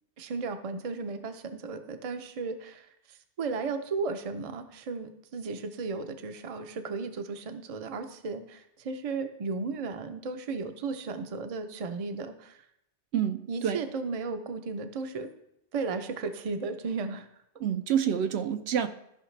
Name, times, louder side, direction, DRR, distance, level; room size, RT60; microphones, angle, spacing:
voice 1, 0.2-12.6 13.5-15.3 15.7-17.3, right 4 dB, 40° right, 8 dB, 0.6 m, -35 dB
voice 2, 13.1-13.8 17.6-18.9, right 8 dB, 75° right, 8 dB, 0.9 m, -28 dB
14.0 x 5.6 x 3.2 m, 0.79 s
omnidirectional pair, 1.1 m